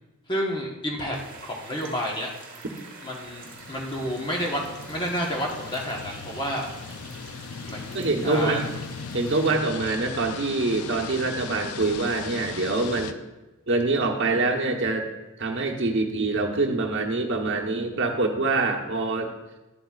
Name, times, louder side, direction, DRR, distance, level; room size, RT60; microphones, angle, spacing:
voice 1, 0.3-1.2 1.4-2.3 3.0-4.6 4.9-6.7 7.6-8.6, equal, 20° left, -1 dB, 1.1 m, -30 dB
sound 1, 1.1-9.5, right 3 dB, 40° right, 1.5 m, -46 dB
sound 2, 3.2-13.1, left 5 dB, 75° left, 0.4 m, -38 dB
voice 2, 7.9-8.6 9.1-13.2 13.7-15.1 15.4-19.3, right 3 dB, 55° right, 1 dB, 1.0 m, -25 dB
11.5 x 7.9 x 2.4 m, 1.0 s
head